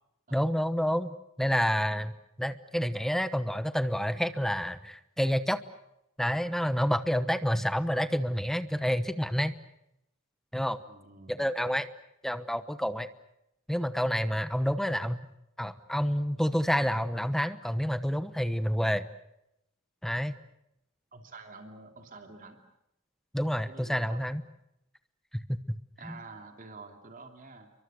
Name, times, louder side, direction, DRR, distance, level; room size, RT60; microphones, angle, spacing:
voice 1, 0.3-2.1 2.4-5.6 6.2-9.5 10.5-10.8 11.3-11.9 12.2-13.1 13.7-15.2 15.6-19.1 20.0-20.4 23.3-24.4 25.3-25.6 26.0-26.2, equal, ahead, 11 dB, 1.0 m, -29 dB
voice 2, 10.9-11.4 21.1-22.6 23.7-24.2 26.0-27.7, right 3 dB, 40° right, 4 dB, 2.8 m, -48 dB
30.0 x 24.0 x 6.4 m, 0.83 s
head